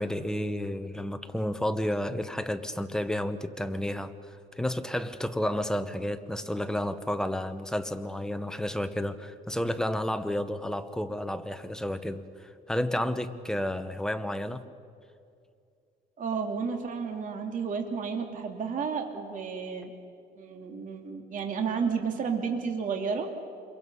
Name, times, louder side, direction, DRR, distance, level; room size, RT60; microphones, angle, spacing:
voice 1, 0.0-14.7, left 1 dB, 5° left, 9 dB, 1.1 m, -31 dB
voice 2, 16.2-19.9 20.4-23.3, right 5 dB, 50° right, 3 dB, 2.8 m, -32 dB
27.5 x 23.0 x 5.6 m, 2.5 s
cardioid pair, 110°, 17 cm